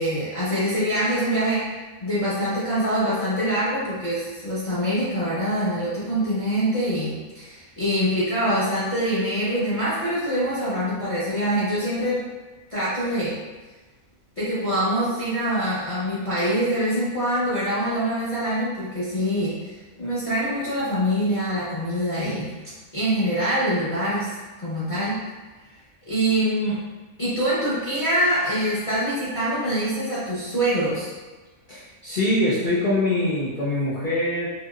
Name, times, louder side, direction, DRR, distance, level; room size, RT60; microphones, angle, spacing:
voice 1, 0.0-1.7 2.0-12.2 12.7-13.4 14.4-19.6 20.0-22.5 22.9-25.3 26.1-26.8 27.2-31.1, equal, 30° left, -11 dB, 0.8 m, -24 dB
voice 2, 31.7-34.5, left 1 dB, 60° left, -9 dB, 0.5 m, -23 dB
3.0 x 2.7 x 2.3 m, 1.3 s
omnidirectional pair, 1.5 m